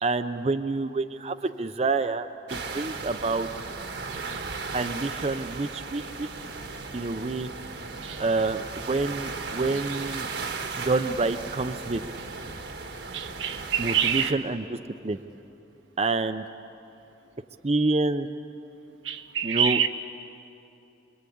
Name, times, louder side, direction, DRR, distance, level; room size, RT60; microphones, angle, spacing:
voice 1, 0.0-3.5 4.7-6.3 6.9-7.5 8.2-10.3 10.8-12.0 13.8-14.8 15.0-15.2 16.0-16.4 17.6-18.3 19.4-19.9, right 3 dB, 35° right, 9 dB, 0.6 m, -27 dB
sound 1, 2.5-14.3, right 4 dB, 65° right, 1.4 m, -36 dB
voice 2, 13.1-14.4 19.0-19.9, right 8 dB, 90° right, 6 dB, 1.2 m, -27 dB
26.0 x 24.0 x 8.6 m, 2.8 s
head